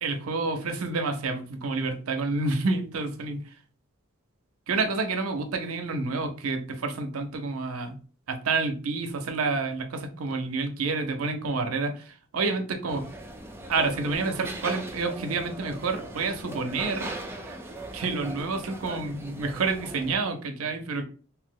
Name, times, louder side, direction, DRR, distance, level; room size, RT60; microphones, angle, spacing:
voice 1, 0.0-3.4 4.7-8.0 8.3-13.1 13.7-17.1 17.4-17.6 17.9-21.1, right 3 dB, 85° right, 6 dB, 0.5 m, -29 dB
sound 1, 12.9-20.2, right 1 dB, 10° right, 0.3 m, -39 dB
2.8 x 2.0 x 3.6 m, 0.40 s
head